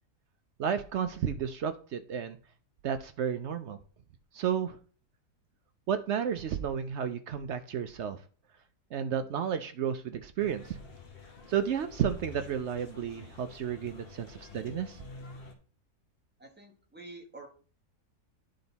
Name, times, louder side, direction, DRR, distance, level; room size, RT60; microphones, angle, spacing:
voice 1, 0.6-2.4 2.8-3.8 4.3-4.8 5.9-8.2 8.9-10.8 11.5-15.0, right 8 dB, 70° right, 0.6 m, -32 dB
sound 1, 10.4-15.5, left 3 dB, 40° left, 1.2 m, -49 dB
voice 2, 16.4-17.5, right 2 dB, 5° right, 1.2 m, -48 dB
10.5 x 3.9 x 4.0 m
omnidirectional pair, 1.7 m